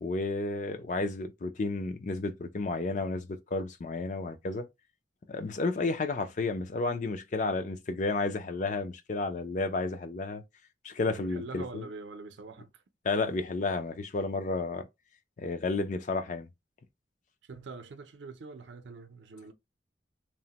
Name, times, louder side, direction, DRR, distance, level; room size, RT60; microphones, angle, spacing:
voice 1, 0.0-4.7 5.3-10.4 10.8-11.8 13.0-14.9 15.4-16.5, left 3 dB, 45° left, 0.4 m, -32 dB
voice 2, 11.1-12.8 17.4-19.5, right 3 dB, 80° right, 0.5 m, -44 dB
3.0 x 2.1 x 2.8 m
head